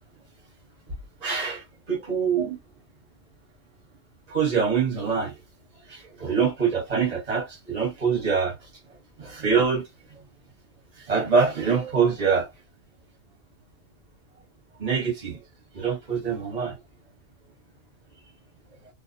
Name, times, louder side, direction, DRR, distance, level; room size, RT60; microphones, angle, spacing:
voice 1, 1.2-2.6 4.3-5.3 5.9-8.5 9.2-9.8 11.1-12.5 14.8-15.4 15.7-16.7, right 6 dB, 35° right, 0.8 m, -24 dB
2.5 x 2.0 x 2.5 m
omnidirectional pair, 1.4 m